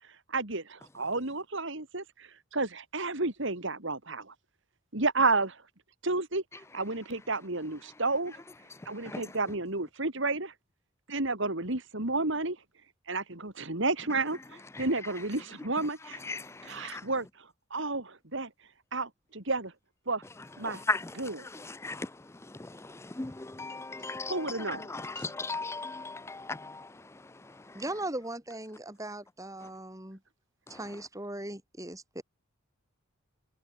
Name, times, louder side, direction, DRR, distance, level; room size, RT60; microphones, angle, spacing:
voice 1, 0.3-4.3 4.9-5.6 6.0-6.4 6.7-8.3 8.9-10.5 11.1-12.6 13.1-16.2 16.6-17.3 17.7-18.5 18.9-19.7 20.1-20.2 20.6-20.8 21.2-21.4 24.3-24.9, right 3 dB, 60° right, 2.9 m, -31 dB
voice 2, 16.2-17.0 20.6-21.1 21.4-22.1 22.6-26.9, left 3 dB, 10° left, 0.5 m, -37 dB
voice 3, 27.7-30.2 30.7-32.2, right 1 dB, 15° right, 4.4 m, -38 dB
head